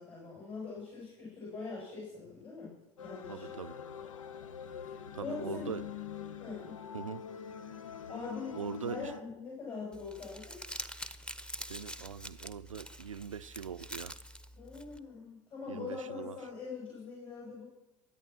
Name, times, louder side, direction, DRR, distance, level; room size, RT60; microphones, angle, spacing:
voice 1, 0.0-2.7 3.0-3.5 4.8-5.7 6.4-6.8 8.1-10.6 14.5-17.7, left 4 dB, 35° left, 7.8 m, -43 dB
sound 1, 3.0-9.2, left 7 dB, 80° left, 0.8 m, -44 dB
voice 2, 3.3-3.8 5.1-5.8 6.9-7.2 8.6-9.1 11.7-14.1 15.7-16.4, right 7 dB, 90° right, 0.5 m, -41 dB
Crumpling crinkling, 9.9-15.0, equal, 5° left, 1.1 m, -45 dB
23.0 x 9.3 x 6.1 m
hypercardioid pair, 75°, 16 cm